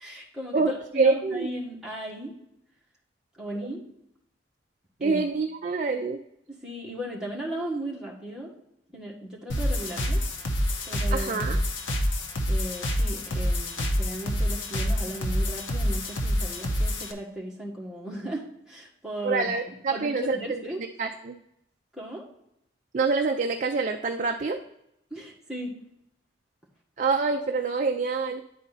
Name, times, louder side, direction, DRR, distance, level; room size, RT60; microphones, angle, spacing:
voice 1, 0.0-2.3 3.3-3.8 5.0-5.2 6.5-8.5 8.9-10.2 10.8-11.6 12.5-19.5 19.9-20.8 21.9-22.2 25.1-25.7, right 1 dB, 5° right, -4 dB, 1.5 m, -36 dB
voice 2, 1.0-1.5 5.0-6.2 11.1-11.6 19.2-20.6 21.0-21.3 22.9-24.6 27.0-28.4, right 4 dB, 40° right, 4 dB, 0.4 m, -26 dB
sound 1, 9.5-17.1, equal, 80° left, 0.9 m, -27 dB
9.9 x 4.2 x 4.0 m, 0.81 s
head